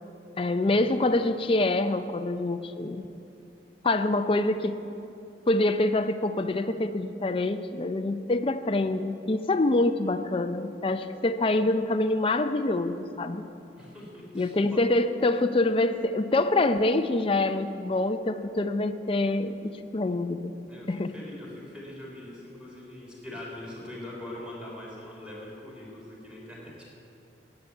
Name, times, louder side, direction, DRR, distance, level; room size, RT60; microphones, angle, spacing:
voice 1, 0.4-3.0 3.8-4.7 5.5-13.4 14.3-20.5 20.9-21.1, left 2 dB, 30° left, 8 dB, 0.5 m, -26 dB
voice 2, 13.8-14.8 20.7-26.9, left 1 dB, 5° right, -5 dB, 3.7 m, -42 dB
11.0 x 9.1 x 9.1 m, 2.8 s
head